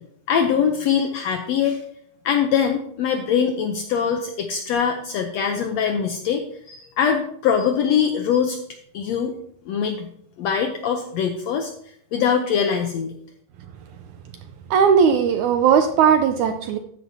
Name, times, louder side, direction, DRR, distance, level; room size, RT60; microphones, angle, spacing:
voice 1, 0.3-1.8 2.2-8.6 8.9-9.3 9.7-10.1 10.4-11.7 12.1-13.1, left 7 dB, 85° left, 5 dB, 1.5 m, -22 dB
voice 2, 14.7-16.8, right 7 dB, 80° right, 8 dB, 1.8 m, -17 dB
13.0 x 9.9 x 2.8 m, 0.67 s
omnidirectional pair, 4.0 m